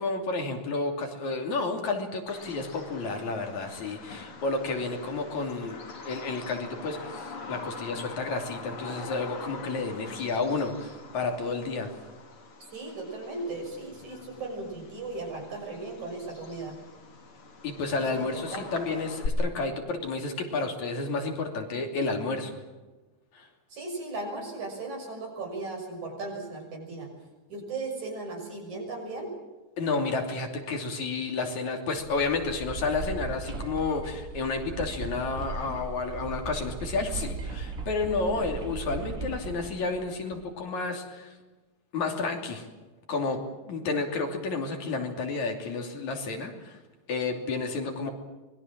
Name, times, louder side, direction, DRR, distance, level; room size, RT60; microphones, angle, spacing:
voice 1, 0.0-5.8 6.0-11.9 17.6-22.6 23.3-23.5 29.8-41.3 41.9-42.7 43.1-43.4 43.7-46.8 47.1-48.1, left 3 dB, 70° left, 3 dB, 4.3 m, -31 dB
Bird vocalization bird call bird song, 2.3-19.3, left 4 dB, 50° left, 3.4 m, -43 dB
voice 2, 12.7-16.8 18.1-18.7 23.7-27.1 27.5-29.3, right 3 dB, 75° right, 1 dB, 7.7 m, -37 dB
sound 1, 32.0-40.5, right 4 dB, 30° right, 2.0 m, -37 dB
25.0 x 21.5 x 7.5 m, 1.2 s
omnidirectional pair, 3.4 m